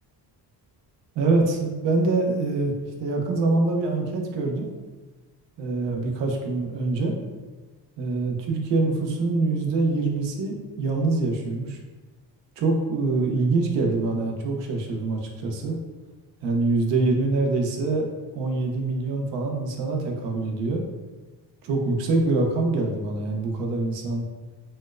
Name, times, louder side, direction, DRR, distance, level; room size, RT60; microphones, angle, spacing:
voice 1, 1.2-2.7 3.0-4.8 5.6-7.1 8.0-11.8 12.6-15.8 16.4-18.1 18.3-20.8 21.6-24.2, right 3 dB, 90° right, 1 dB, 0.7 m, -24 dB
4.2 x 2.1 x 2.4 m, 1.2 s
cardioid pair, 140°, 42 cm